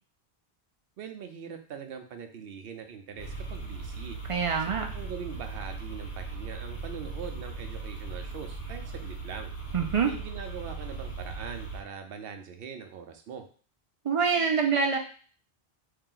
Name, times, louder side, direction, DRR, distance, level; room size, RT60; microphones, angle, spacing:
voice 1, 1.0-4.2 4.7-9.5 10.0-13.5, right 7 dB, 70° right, 6 dB, 0.8 m, -42 dB
sound 1, 3.2-11.8, right 4 dB, 70° left, 1.1 m, -38 dB
voice 2, 4.3-4.8 9.7-10.1 14.0-15.0, right 5 dB, 50° right, 3 dB, 0.4 m, -25 dB
3.2 x 2.8 x 3.8 m, 0.42 s
omnidirectional pair, 1.0 m